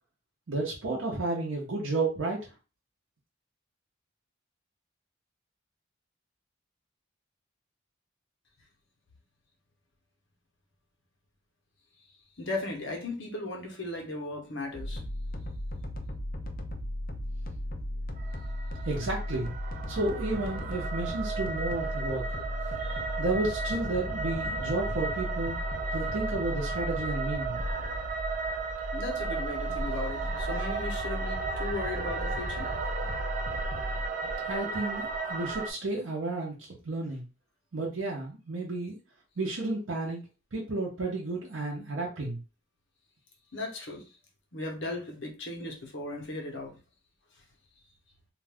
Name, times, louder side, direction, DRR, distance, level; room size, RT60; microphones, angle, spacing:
voice 1, 0.5-2.5 18.8-19.5 19.9-22.2 23.2-25.6 25.9-27.6 34.5-37.2 37.7-39.0 39.4-40.2 40.5-42.4, right 2 dB, 80° right, 0.7 m, -32 dB
voice 2, 12.4-15.0 22.8-23.2 28.9-32.7 33.0-33.1 43.5-44.1 44.5-46.7, left 2 dB, 65° left, 0.9 m, -37 dB
sound 1, 14.7-34.1, left 1 dB, 45° left, 0.4 m, -36 dB
sound 2, 18.2-35.7, right 4 dB, 40° right, 0.4 m, -35 dB
2.5 x 2.4 x 3.4 m
head